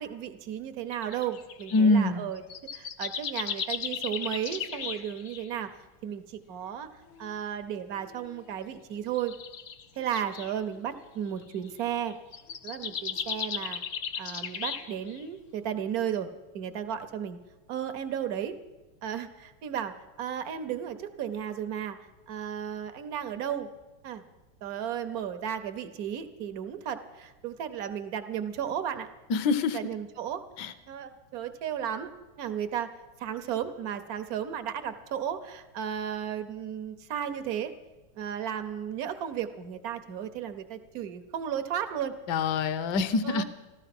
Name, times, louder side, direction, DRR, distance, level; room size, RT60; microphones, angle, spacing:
voice 1, 0.0-2.4 2.7-5.8 6.0-6.9 7.2-9.3 10.0-12.1 12.6-13.8 14.2-17.4 17.7-18.6 19.0-22.0 22.3-23.7 24.0-24.2 24.6-29.1 29.7-30.4 30.9-32.1 32.4-32.9 33.2-37.7 38.1-42.2 43.2-43.4, right 9 dB, 70° right, 9 dB, 0.9 m, -34 dB
sound 1, 0.9-1.8 2.4-5.5 7.2-7.3 8.0-8.4 9.1-10.5 11.4-11.7 12.1-15.2, left 7 dB, 85° left, 0.6 m, -36 dB
voice 2, 1.7-2.2 29.3-29.8 30.6-30.7 42.3-43.4, left 3 dB, 65° left, 13 dB, 1.2 m, -24 dB
14.5 x 13.0 x 5.9 m, 1.1 s
omnidirectional pair, 2.4 m